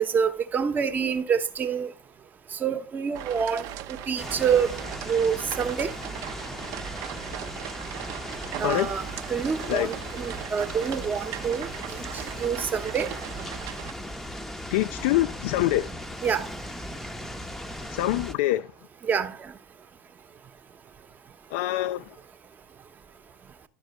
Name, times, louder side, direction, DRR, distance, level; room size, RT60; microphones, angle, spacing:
voice 1, 0.0-1.9 2.6-3.6 4.1-4.8 5.1-5.9 8.6-11.7 12.4-13.1 16.2-16.5 19.1-19.3, right 7 dB, 25° right, 1.0 m, -26 dB
sound 1, 3.1-13.9, right 11 dB, 45° right, 0.7 m, -38 dB
sound 2, 4.2-18.3, left 1 dB, 5° left, 0.8 m, -38 dB
voice 2, 14.7-15.9 17.8-18.7 21.5-22.0, left 16 dB, 55° left, 0.4 m, -25 dB
11.0 x 6.1 x 4.5 m
figure-of-eight pair, 80°, 7 cm